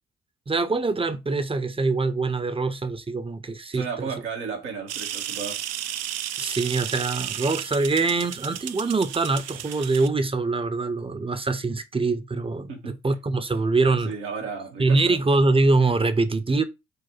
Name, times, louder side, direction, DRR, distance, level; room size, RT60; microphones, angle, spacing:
voice 1, 0.5-4.1 6.4-14.1 14.8-16.6, right 3 dB, 15° right, 0.7 m, -24 dB
voice 2, 3.7-5.6 12.7-13.0 14.0-15.2, right 5 dB, 85° right, 1.1 m, -34 dB
sound 1, 4.9-10.1, right 11 dB, 50° right, 0.5 m, -33 dB
4.8 x 2.1 x 4.3 m
hypercardioid pair, 45°, 34 cm